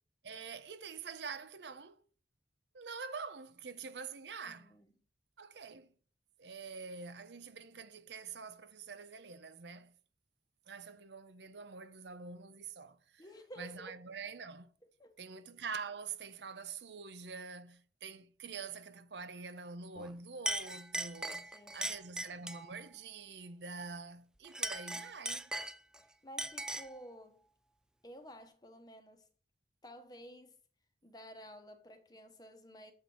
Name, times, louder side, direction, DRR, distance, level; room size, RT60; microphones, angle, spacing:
voice 1, 0.2-2.0 2.7-4.7 5.4-5.9 6.4-9.9 10.7-13.2 13.6-14.7 15.2-25.5, right 5 dB, 85° right, 0.7 m, -46 dB
voice 2, 4.4-4.9 13.2-14.0 15.0-15.2 21.4-22.0 26.0-27.4 28.0-29.3 29.8-30.6 31.0-32.9, equal, 20° left, 1.0 m, -53 dB
Chink clink, 20.0-20.1 20.5-22.7 24.4-26.0 26.4-27.0, right 1 dB, 5° right, 0.3 m, -39 dB
7.4 x 4.6 x 5.4 m
head